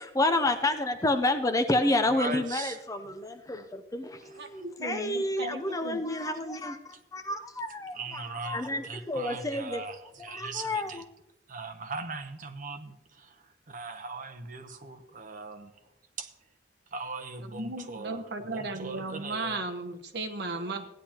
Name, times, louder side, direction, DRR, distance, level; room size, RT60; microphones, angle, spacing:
voice 1, 0.0-9.8 10.3-10.9, left 2 dB, 20° left, 8 dB, 0.6 m, -29 dB
voice 2, 2.1-2.8 4.2-4.6 6.9-7.0 7.9-11.0 11.5-15.8 16.2-16.3 16.9-19.6, right 4 dB, 45° right, 8 dB, 0.8 m, -40 dB
voice 3, 4.4-6.0 17.5-20.9, right 2 dB, 60° right, 6 dB, 1.1 m, -36 dB
16.0 x 10.0 x 2.9 m, 0.87 s
head